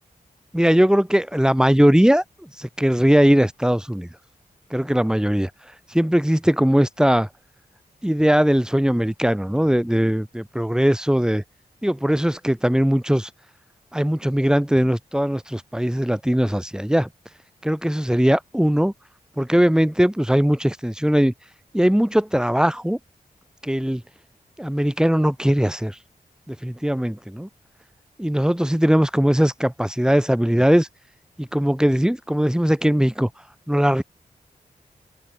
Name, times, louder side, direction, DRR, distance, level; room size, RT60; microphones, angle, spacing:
voice 1, 0.5-4.1 4.7-5.5 5.9-7.3 8.0-11.4 11.8-13.3 13.9-17.1 17.6-18.9 19.4-21.3 21.7-23.0 23.6-24.0 24.6-26.0 26.5-27.5 28.2-30.9 31.4-33.3 33.7-34.0, equal, 5° right, 2.7 m, -20 dB
open air
cardioid pair, 45°, 17 cm